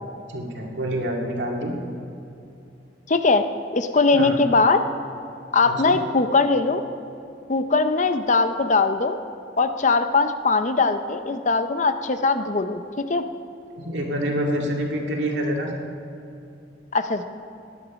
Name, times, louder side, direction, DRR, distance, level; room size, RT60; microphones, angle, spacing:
voice 1, 0.3-1.8 4.2-4.4 5.6-6.0 13.7-15.7, equal, 75° right, 0 dB, 2.2 m, -27 dB
voice 2, 3.1-3.4 3.7-4.8 5.5-6.8 7.5-9.2 9.6-12.8 13.1-13.2 16.9-17.3, left 3 dB, 40° left, 9 dB, 0.6 m, -20 dB
17.5 x 11.0 x 5.2 m, 2.6 s
head